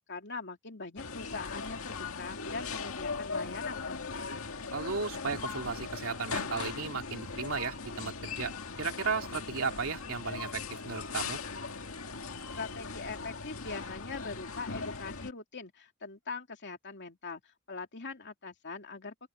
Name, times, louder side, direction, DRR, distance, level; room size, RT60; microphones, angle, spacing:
voice 1, 0.1-4.4 12.5-17.4 17.7-19.3, left 4 dB, 55° left, 2.9 m, -42 dB
sound 1, 1.0-15.3, left 4 dB, 75° left, 2.0 m, -39 dB
voice 2, 4.7-8.5 8.8-11.4, right 4 dB, 70° right, 2.9 m, -35 dB
open air
head